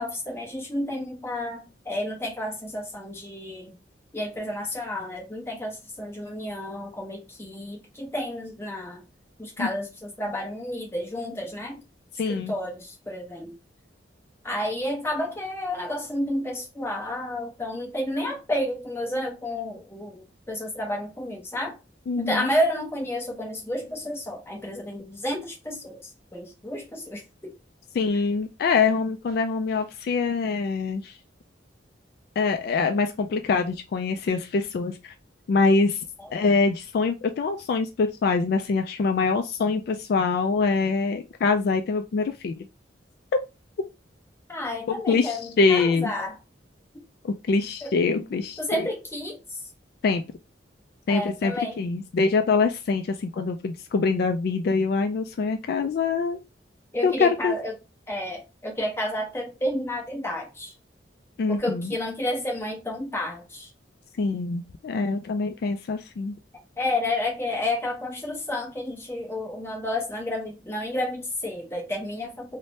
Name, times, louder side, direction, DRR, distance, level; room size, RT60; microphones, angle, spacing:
voice 1, 0.0-3.8 4.1-9.0 9.4-11.8 12.3-13.5 14.4-21.8 22.2-27.5 36.2-36.3 44.5-46.3 47.8-47.9 48.6-49.4 51.1-51.8 56.9-57.7 58.1-60.7 61.5-63.7 66.8-72.6, left 1 dB, 15° left, 0.8 m, -31 dB
voice 2, 12.2-12.5 22.1-22.5 27.9-31.2 32.4-35.1 35.5-36.1 36.3-42.7 44.9-46.1 47.2-48.9 50.0-50.2 51.1-56.4 57.0-57.6 61.4-62.0 64.2-66.3, left 4 dB, 55° left, 0.3 m, -24 dB
2.7 x 2.1 x 3.2 m
head